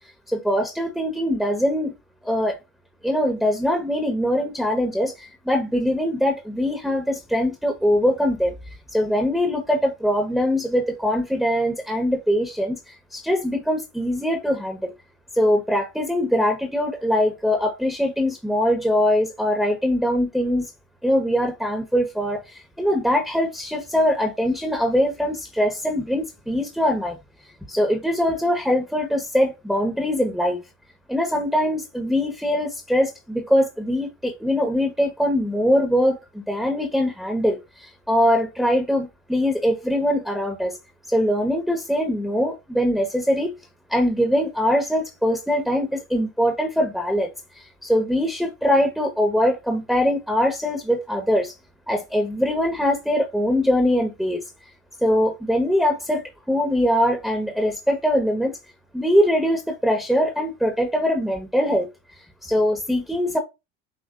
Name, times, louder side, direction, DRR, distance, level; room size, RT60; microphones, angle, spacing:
voice 1, 0.3-1.9 2.2-2.6 3.0-8.6 8.9-14.9 15.3-20.7 21.0-27.2 27.7-30.6 31.1-40.8 41.1-43.5 43.9-47.3 47.8-51.5 51.9-54.4 55.0-58.6 58.9-61.9 62.4-63.4, equal, ahead, 1.4 m, -22 dB
6.8 x 2.7 x 2.6 m
hypercardioid pair, 75°, 34 cm